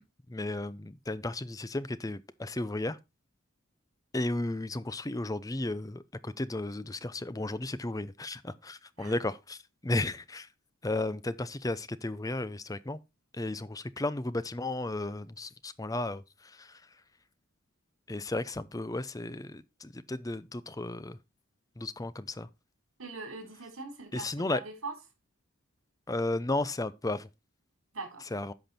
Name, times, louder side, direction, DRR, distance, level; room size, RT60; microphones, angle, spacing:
voice 1, 0.3-3.0 4.1-9.6 9.8-10.5 10.8-13.0 13.3-16.2 16.6-16.7 18.1-21.2 21.8-22.5 24.1-24.6 26.1-27.3 28.3-28.5, left 2 dB, 15° left, 0.6 m, -34 dB
voice 2, 9.0-9.3 23.0-25.0 27.9-28.3, right 3 dB, 80° right, 4.1 m, -41 dB
10.5 x 6.0 x 4.3 m
head